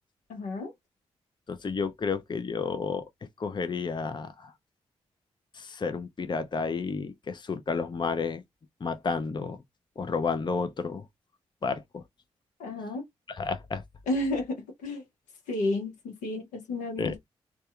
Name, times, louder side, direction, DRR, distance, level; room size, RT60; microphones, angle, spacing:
voice 1, 0.3-0.7 12.6-13.0 14.1-15.0 15.5-17.2, left 2 dB, 90° left, 0.8 m, -31 dB
voice 2, 1.5-3.0 3.4-4.5 5.5-8.4 8.8-9.6 10.0-11.0 11.6-12.0 13.3-13.8 17.0-17.1, left 4 dB, 35° left, 0.6 m, -31 dB
2.7 x 2.3 x 2.4 m
supercardioid pair, 40°, 12 cm